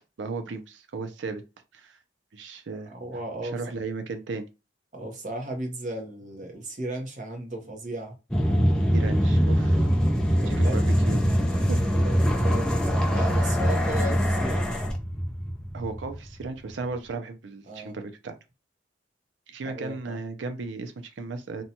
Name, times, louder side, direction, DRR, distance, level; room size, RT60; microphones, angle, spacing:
voice 1, 0.2-1.4 1.7-2.0 2.3-2.9 3.4-4.5 8.9-10.0 10.5-11.2 11.7-11.9 15.7-18.4 19.5-21.6, right 3 dB, 75° right, 0.5 m, -35 dB
voice 2, 2.9-3.5 4.9-8.2 8.6-9.0 10.2-10.8 11.8-14.8 17.7-18.0 19.6-20.2, right 1 dB, 40° right, 0.8 m, -36 dB
sound 1, 8.3-16.5, equal, 5° left, 0.4 m, -23 dB
2.6 x 2.2 x 2.7 m
head